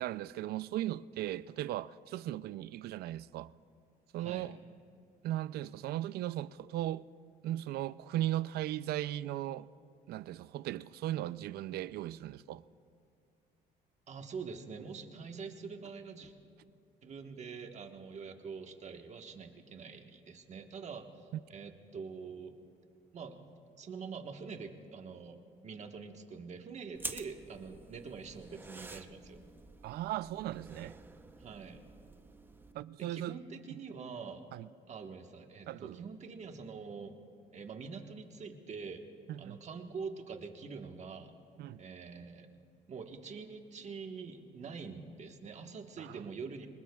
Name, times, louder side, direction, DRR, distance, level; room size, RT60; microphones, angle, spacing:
voice 1, 0.0-3.5 4.1-4.6 5.2-7.1 7.4-9.7 10.1-12.6 29.8-31.0 32.7-33.4 34.5-34.7 35.7-36.1 39.3-39.6 41.6-41.8 46.0-46.2, right 14 dB, 70° right, 0.4 m, -37 dB
voice 2, 4.2-4.5 14.1-16.3 17.0-22.5 23.1-23.4 23.8-25.4 25.6-29.4 31.4-31.8 33.0-34.4 34.9-37.1 37.5-39.0 39.4-41.3 41.8-42.5 42.9-46.7, right 5 dB, 40° right, 1.3 m, -45 dB
sound 1, 26.9-32.7, right 3 dB, 10° right, 0.7 m, -48 dB
25.0 x 20.0 x 2.3 m
cardioid pair, 110°, 17 cm